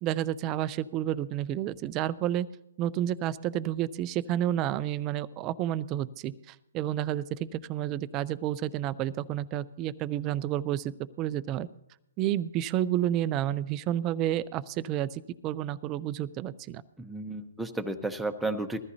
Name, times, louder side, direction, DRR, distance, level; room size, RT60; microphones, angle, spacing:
voice 1, 0.0-2.5 2.8-11.7 12.2-16.8, right 12 dB, 25° right, 15 dB, 0.5 m, -30 dB
voice 2, 17.0-18.8, right 2 dB, 5° right, 5 dB, 0.9 m, -32 dB
21.0 x 14.0 x 2.7 m, 0.85 s
hypercardioid pair, 145°, 0 cm